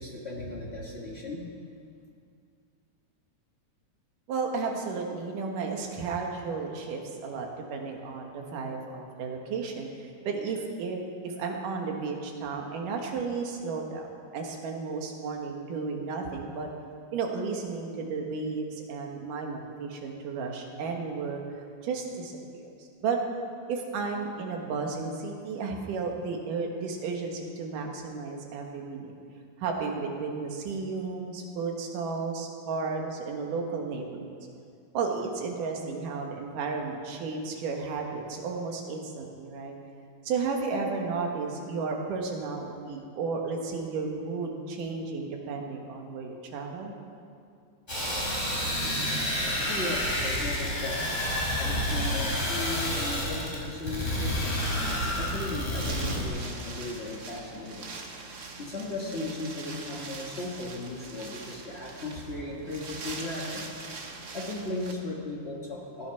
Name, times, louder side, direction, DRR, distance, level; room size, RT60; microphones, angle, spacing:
voice 1, 0.0-1.4 49.7-51.0 51.6-57.9 58.6-63.7 64.3-66.1, left 2 dB, 55° left, -3 dB, 0.7 m, -36 dB
voice 2, 4.3-14.0 14.3-16.7 17.1-21.4 21.8-23.2 23.7-29.1 29.6-34.4 34.9-39.7 40.2-46.9 50.4-50.5, right 4 dB, 80° right, 1 dB, 3.0 m, -33 dB
sound 1, 47.9-56.3, left 1 dB, 15° left, 3.9 m, -29 dB
Wind, 53.7-64.9, right 3 dB, 65° right, 0.9 m, -43 dB
17.0 x 10.5 x 5.8 m, 2.4 s
omnidirectional pair, 3.7 m